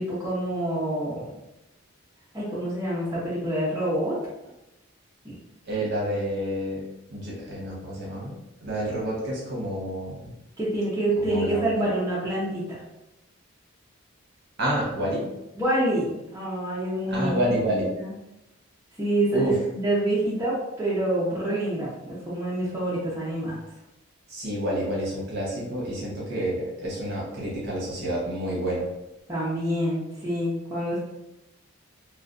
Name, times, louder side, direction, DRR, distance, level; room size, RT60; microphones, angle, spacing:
voice 1, 0.0-1.3 2.3-4.2 5.2-5.3 10.6-12.8 15.6-18.1 19.0-23.6 29.3-31.0, right 1 dB, 15° right, -8 dB, 0.4 m, -27 dB
voice 2, 5.6-6.8 7.1-10.3 11.2-11.9 14.6-15.3 17.1-17.9 19.3-19.6 24.3-28.9, equal, 50° right, -4 dB, 0.8 m, -29 dB
2.5 x 2.1 x 2.4 m, 0.93 s
head